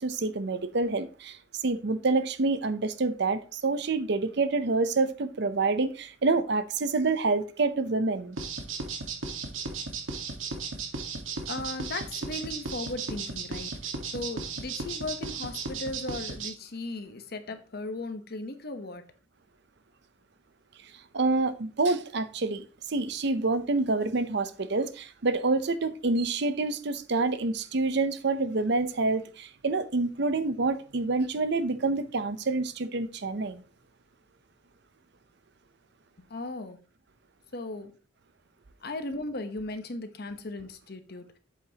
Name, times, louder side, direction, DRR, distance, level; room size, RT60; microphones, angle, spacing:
voice 1, 0.0-1.4 1.6-8.4 21.1-33.6, right 3 dB, 60° right, 0.7 m, -27 dB
sound 1, 8.4-16.5, right 4 dB, 85° right, 1.6 m, -35 dB
voice 2, 11.5-19.0 36.3-36.8 37.5-37.9 38.8-41.4, left 2 dB, 55° left, 1.0 m, -37 dB
8.1 x 7.6 x 2.9 m
head